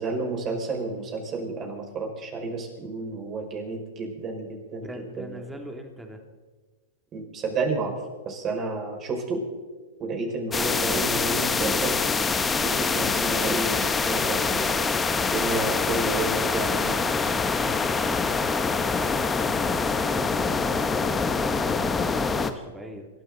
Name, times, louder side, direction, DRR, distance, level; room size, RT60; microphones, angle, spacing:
voice 1, 0.0-5.4 7.1-8.0 8.2-9.4 10.0-12.0 12.6-13.7 14.0-17.1, right 3 dB, 30° right, 0 dB, 5.7 m, -31 dB
voice 2, 4.8-6.2 16.6-23.1, right 1 dB, 5° right, 3 dB, 2.7 m, -40 dB
sound 1, 10.5-22.5, left 4 dB, 15° left, 1.2 m, -25 dB
27.0 x 12.5 x 4.0 m, 1.3 s
hypercardioid pair, 110°, 0 cm